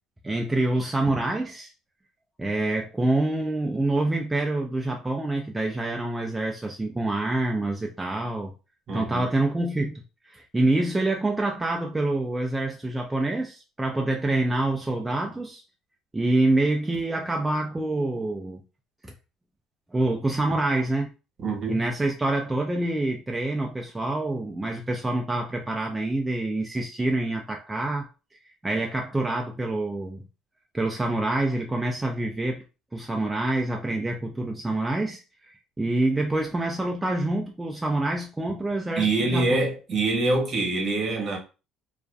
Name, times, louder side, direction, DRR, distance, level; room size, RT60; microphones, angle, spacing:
voice 1, 0.2-1.7 2.4-8.5 8.9-15.6 16.1-18.6 19.0-19.1 19.9-21.1 21.7-28.1 28.6-30.3 30.7-32.6 32.9-39.6, right 2 dB, 15° right, 0.3 m, -26 dB
voice 2, 8.9-9.3 21.4-21.8 39.0-41.4, right 2 dB, 50° right, 1.0 m, -25 dB
2.4 x 2.2 x 2.4 m
cardioid pair, 100°, 0 cm